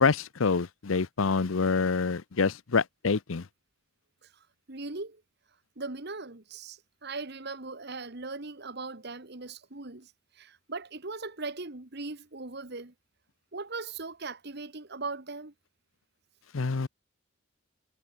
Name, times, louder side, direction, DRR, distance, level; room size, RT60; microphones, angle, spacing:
voice 1, 0.0-3.4 16.5-16.9, left 4 dB, 80° left, 0.7 m, -26 dB
voice 2, 4.7-5.2 5.8-12.9 13.5-15.5, right 3 dB, 55° right, 1.7 m, -39 dB
head